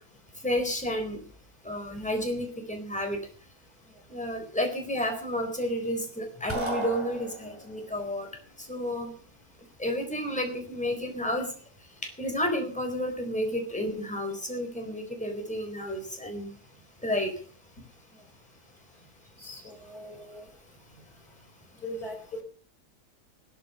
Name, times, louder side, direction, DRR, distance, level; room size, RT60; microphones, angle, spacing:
voice 1, 0.4-1.2 1.6-3.2 4.1-8.3 8.6-9.1 9.8-11.5 12.2-16.5 17.0-17.3, equal, 5° left, 3 dB, 4.1 m, -31 dB
sound 1, 6.5-7.8, right 1 dB, 15° right, 5.7 m, -34 dB
voice 2, 19.4-20.4 21.8-22.4, left 1 dB, 65° left, 3 dB, 4.7 m, -40 dB
16.0 x 14.0 x 5.6 m, 0.43 s
omnidirectional pair, 1.7 m